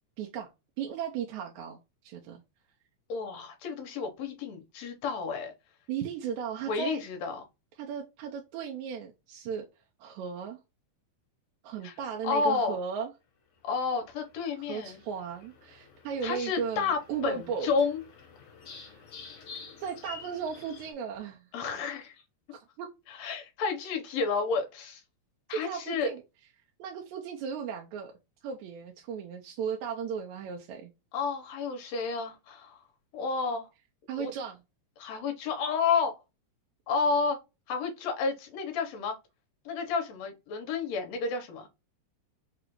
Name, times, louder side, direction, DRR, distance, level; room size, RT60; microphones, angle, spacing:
voice 1, 0.2-0.5 0.8-2.4 5.9-7.0 7.8-9.7 10.0-10.6 11.6-13.1 14.6-17.7 18.7-19.0 19.8-21.5 22.5-22.9 25.5-26.2 26.8-30.9 34.1-34.6, right 7 dB, 80° right, 1.9 m, -36 dB
voice 2, 3.1-5.5 6.7-7.4 11.8-11.9 12.2-12.8 13.6-15.0 16.2-18.0 21.5-22.1 23.1-25.0 25.5-26.1 31.1-32.8 33.1-33.7 34.2-34.3 35.0-36.2 36.9-37.4 37.7-39.2 39.6-41.7, left 5 dB, 70° left, 1.9 m, -31 dB
sound 1, 14.1-20.9, left 6 dB, 50° left, 2.3 m, -49 dB
5.0 x 2.4 x 2.9 m
omnidirectional pair, 3.6 m